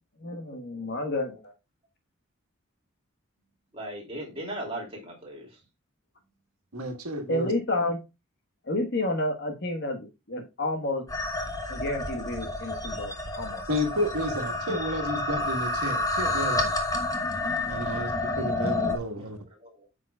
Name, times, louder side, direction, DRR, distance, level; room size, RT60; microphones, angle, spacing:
voice 1, 0.2-1.5 7.3-8.0 8.6-11.0 11.7-13.6 14.7-14.8, left 1 dB, 50° left, 4 dB, 1.4 m, -30 dB
voice 2, 3.7-5.6 17.9-18.3 19.2-19.9, right 1 dB, 25° right, -2 dB, 2.8 m, -39 dB
voice 3, 6.7-7.5 13.7-16.7 17.6-18.1 18.4-19.4, equal, 90° right, 4 dB, 1.6 m, -31 dB
sound 1, 11.1-19.0, left 2 dB, 15° left, 1.0 m, -29 dB
8.3 x 6.2 x 2.3 m, 0.25 s
head